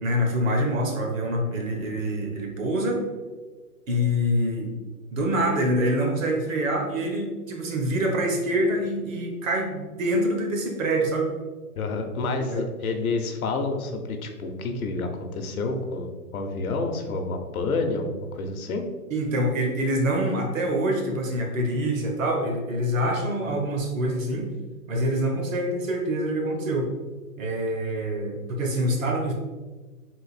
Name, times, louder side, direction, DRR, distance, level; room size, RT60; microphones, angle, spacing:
voice 1, 0.0-3.1 3.9-4.7 5.1-11.3 12.4-12.6 19.1-24.5 24.9-26.9 27.4-29.3, equal, 55° right, 2 dB, 1.0 m, -25 dB
voice 2, 11.8-18.8, left 3 dB, 65° left, 5 dB, 0.8 m, -29 dB
3.8 x 2.6 x 4.1 m, 1.3 s
hypercardioid pair, 150°, 46 cm